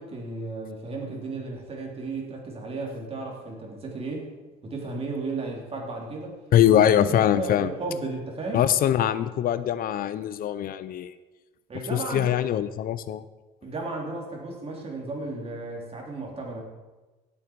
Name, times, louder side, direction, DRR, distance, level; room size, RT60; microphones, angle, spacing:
voice 1, 0.0-4.3 4.6-6.4 6.7-8.7 11.7-12.4 13.6-16.6, right 3 dB, 35° right, 0 dB, 3.7 m, -34 dB
voice 2, 6.5-7.7 8.5-11.1 11.9-13.2, left 11 dB, 60° left, 14 dB, 0.6 m, -22 dB
17.0 x 8.8 x 4.7 m, 1.2 s
cardioid pair, 110°, 17 cm